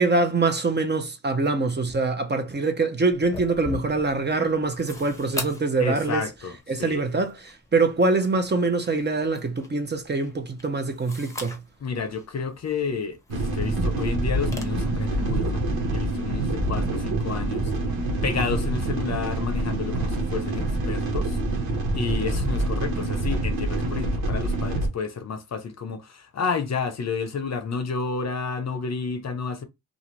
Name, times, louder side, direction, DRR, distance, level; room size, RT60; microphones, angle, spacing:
voice 1, 0.0-6.2 6.7-11.6, right 3 dB, 30° right, 0.7 m, -24 dB
sound 1, 3.1-14.6, left 2 dB, 10° left, 0.8 m, -42 dB
voice 2, 5.8-7.0 11.8-17.7 18.2-21.4 21.9-29.6, left 5 dB, 45° left, 0.6 m, -31 dB
sound 2, 13.3-24.9, right 2 dB, 85° right, 1.0 m, -26 dB
2.5 x 2.5 x 3.1 m
cardioid pair, 60°, 36 cm